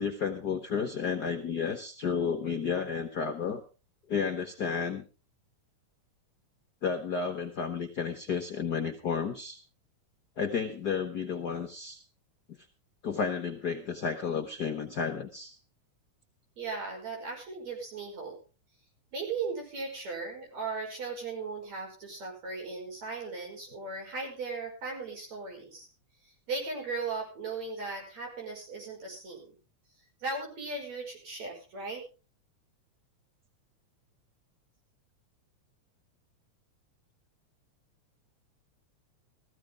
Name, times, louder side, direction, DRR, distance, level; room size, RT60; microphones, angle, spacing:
voice 1, 0.0-3.6 4.1-5.0 6.8-9.6 10.4-12.0 13.0-15.6, left 6 dB, 55° left, 5 dB, 1.1 m, -32 dB
voice 2, 16.6-18.4 19.1-25.9 26.5-29.6 30.2-32.0, right 4 dB, 65° right, 0 dB, 6.6 m, -37 dB
15.5 x 15.0 x 3.6 m, 0.33 s
omnidirectional pair, 3.3 m